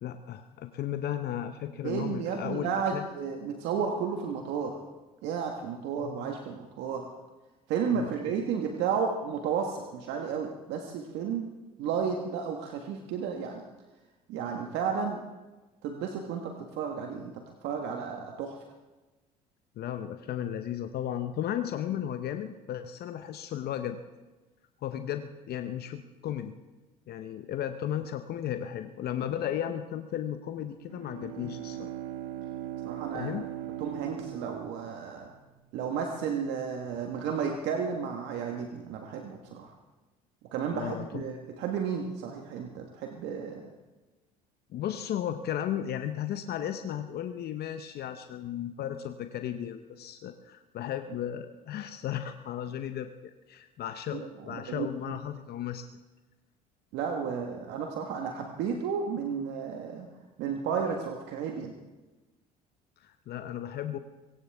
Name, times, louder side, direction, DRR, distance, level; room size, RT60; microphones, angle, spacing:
voice 1, 0.0-3.0 6.0-6.3 7.9-8.2 19.8-24.0 24.8-26.5 27.1-31.9 33.1-33.4 40.7-41.2 44.7-55.9 63.0-64.0, left 10 dB, 55° left, 8 dB, 0.9 m, -35 dB
voice 2, 1.8-4.8 5.2-7.1 7.7-11.5 11.8-13.6 14.3-15.2 15.8-18.6 32.8-33.3 33.8-35.3 35.7-39.7 40.5-43.7 54.1-55.2 56.9-60.1 60.4-61.7, right 6 dB, 70° right, 3 dB, 1.5 m, -33 dB
Bowed string instrument, 30.9-35.5, right 13 dB, 85° right, 1.0 m, -39 dB
22.5 x 17.0 x 3.6 m, 1.2 s
hypercardioid pair, 70°, 19 cm